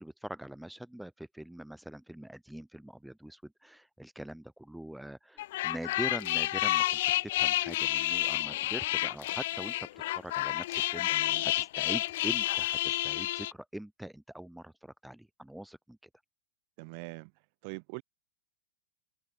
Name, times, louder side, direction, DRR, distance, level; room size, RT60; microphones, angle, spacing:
voice 1, 0.0-9.9 10.2-16.0, right 1 dB, ahead, 1.4 m, -43 dB
sound 1, 5.4-13.5, left 16 dB, 55° left, 0.5 m, -30 dB
voice 2, 11.1-11.5 16.8-17.3 17.6-18.0, right 39 dB, 45° right, 3.1 m, -43 dB
figure-of-eight pair, 90°, 0 cm